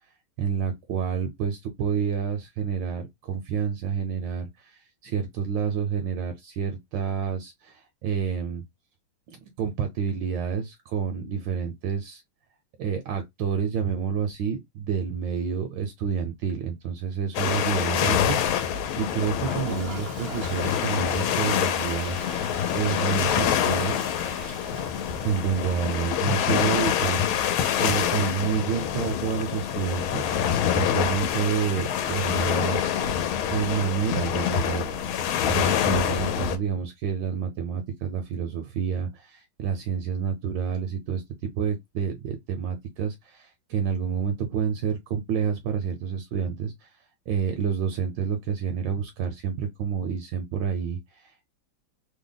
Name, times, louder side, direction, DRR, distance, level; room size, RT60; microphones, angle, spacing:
voice 1, 0.4-8.6 9.3-12.2 12.8-22.2 22.7-24.0 25.2-27.2 27.8-33.0 33.5-35.0 35.5-41.2 41.5-46.9 47.3-51.5, right 7 dB, 75° right, 1.1 m, -29 dB
sound 1, 17.3-36.6, left 9 dB, 80° left, 1.4 m, -26 dB
Toilet flush, 19.3-26.0 26.4-26.5 26.7-26.8 27.0-27.1 29.7-29.8 31.1-31.2, right 4 dB, 50° right, 0.7 m, -43 dB
3.3 x 2.1 x 3.8 m
omnidirectional pair, 2.3 m